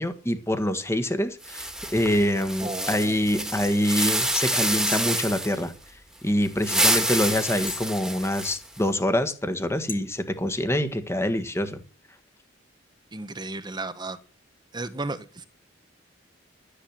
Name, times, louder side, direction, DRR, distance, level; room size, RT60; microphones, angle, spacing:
voice 1, 0.0-1.7 1.9-5.7 6.2-11.8, left 1 dB, 15° left, 1.6 m, -25 dB
sound 1, 1.4-5.6 6.4-8.8, right 1 dB, 5° right, 2.0 m, -27 dB
voice 2, 2.6-3.2 13.1-14.2 14.7-15.4, right 2 dB, 20° right, 1.2 m, -34 dB
sound 2, 4.9-5.3 6.0-6.1 6.7-6.8 7.6-8.0 8.5-8.6 9.3-9.5 9.9-10.0, left 7 dB, 45° left, 2.4 m, -37 dB
13.0 x 10.0 x 7.4 m
head